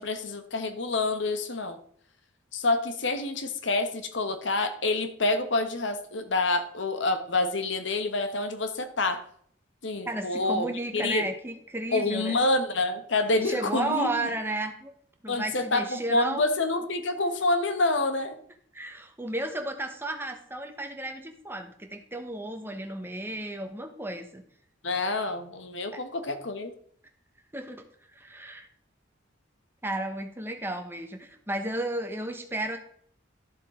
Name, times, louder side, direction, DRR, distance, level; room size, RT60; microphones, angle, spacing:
voice 1, 0.0-1.8 2.5-9.2 9.8-11.3 11.9-14.1 15.3-18.4 24.8-26.7, left 2 dB, 70° left, 9 dB, 1.2 m, -27 dB
voice 2, 10.0-12.4 13.4-14.9 15.2-16.4 18.7-24.4 25.9-26.0 27.5-27.8 28.1-28.7 29.8-32.8, right 1 dB, 10° right, 5 dB, 1.0 m, -33 dB
12.0 x 7.4 x 3.7 m, 0.62 s
head